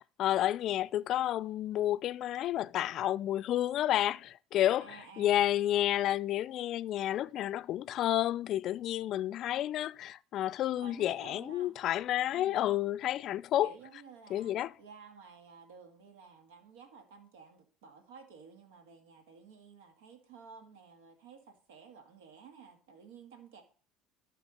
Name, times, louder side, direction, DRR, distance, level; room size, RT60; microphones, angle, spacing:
voice 1, 0.2-13.7 14.3-14.7, left 12 dB, 55° left, 0.4 m, -30 dB
voice 2, 4.8-5.5 10.7-11.8 12.3-12.6 13.6-23.6, right 5 dB, 85° right, 1.7 m, -53 dB
12.0 x 5.7 x 3.9 m
hypercardioid pair, 80°, 0 cm